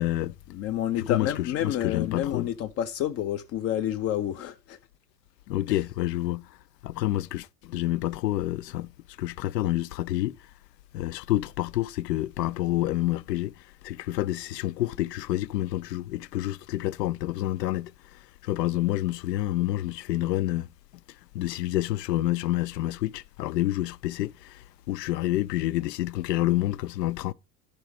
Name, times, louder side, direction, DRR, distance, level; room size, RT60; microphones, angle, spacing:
voice 1, 0.0-0.4 1.0-2.5 5.5-6.6 6.8-8.9 9.2-10.5 10.9-20.7 21.3-27.3, left 15 dB, 80° left, 0.5 m, -28 dB
voice 2, 0.5-4.8, left 11 dB, 30° left, 0.5 m, -29 dB
10.5 x 5.2 x 4.8 m
hypercardioid pair, 80°, 50 cm